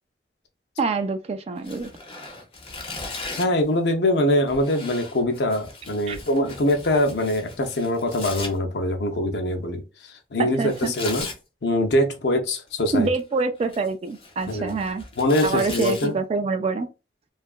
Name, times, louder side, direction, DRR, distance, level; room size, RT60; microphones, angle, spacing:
voice 1, 0.8-1.9 6.1-6.2 10.4-10.9 12.9-15.0 15.4-16.9, right 4 dB, 35° right, 0.3 m, -26 dB
Tearing, 1.6-3.6 4.5-8.5 10.6-11.4 12.7-13.2 13.6-16.1, left 3 dB, 35° left, 0.7 m, -38 dB
voice 2, 3.4-9.8 10.3-11.3 11.6-13.1 14.5-14.8 15.2-16.1, left 1 dB, 70° left, 0.6 m, -23 dB
2.7 x 2.4 x 2.4 m
head